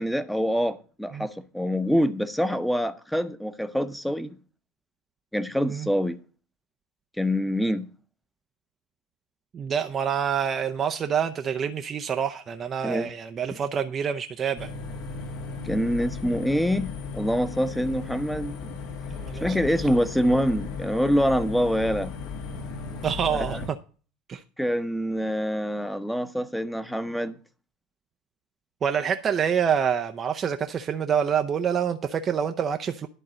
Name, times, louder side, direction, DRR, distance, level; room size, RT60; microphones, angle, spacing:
voice 1, 0.0-4.4 5.3-6.2 7.2-7.9 12.8-13.1 15.6-18.8 19.4-22.1 23.3-23.6 24.6-27.3, equal, ahead, 1.0 m, -25 dB
voice 2, 9.5-14.7 19.1-19.5 23.0-23.8 24.3-24.4 28.8-33.1, right 7 dB, 35° right, 0.7 m, -27 dB
sound 1, 14.6-23.7, left 4 dB, 65° left, 1.7 m, -36 dB
11.0 x 4.0 x 7.6 m
hypercardioid pair, 85°, 0 cm